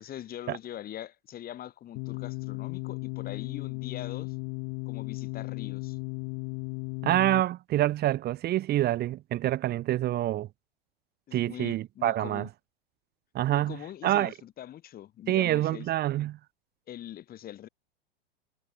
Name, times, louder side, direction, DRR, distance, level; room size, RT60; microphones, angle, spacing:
voice 1, 0.0-4.4 4.9-6.0 11.3-12.5 13.5-15.9 16.9-17.7, left 12 dB, 30° left, 3.9 m, -42 dB
sound 1, 2.0-7.4, left 40 dB or more, 45° left, 3.2 m, -36 dB
voice 2, 7.0-10.5 11.3-12.5 13.3-13.8 14.0-14.3 15.3-16.4, right 14 dB, 30° right, 2.2 m, -26 dB
hypercardioid pair, 105°, 30 cm